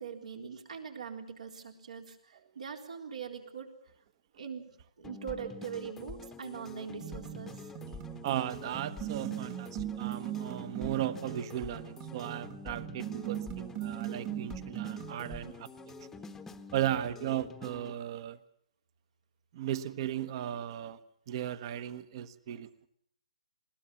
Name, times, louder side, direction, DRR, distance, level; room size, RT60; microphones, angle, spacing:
voice 1, 0.0-3.7 4.4-4.7 5.0-7.7, right 7 dB, 85° right, 3.8 m, -42 dB
sound 1, 5.0-18.0, left 4 dB, 10° left, 1.0 m, -47 dB
sound 2, 7.0-15.5, right 13 dB, 30° right, 1.7 m, -40 dB
voice 2, 7.8-15.9 16.7-18.4 19.5-21.0 21.3-22.7, right 11 dB, 45° right, 1.1 m, -36 dB
20.5 x 18.5 x 7.1 m
hypercardioid pair, 145°, 4 cm